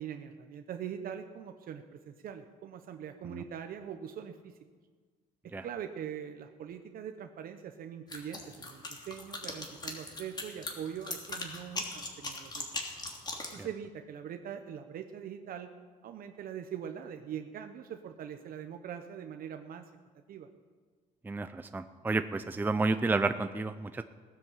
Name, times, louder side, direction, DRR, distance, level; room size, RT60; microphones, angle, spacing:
voice 1, 0.0-4.6 5.4-12.7 13.4-15.7 16.0-19.9 20.3-20.5, right 8 dB, 60° right, 6 dB, 1.0 m, -42 dB
sound 1, 8.1-13.6, left 2 dB, 25° left, 2.9 m, -39 dB
voice 2, 21.2-24.0, right 3 dB, 10° right, 10 dB, 0.5 m, -31 dB
17.5 x 9.9 x 7.5 m, 1.5 s
cardioid pair, 110°, 17 cm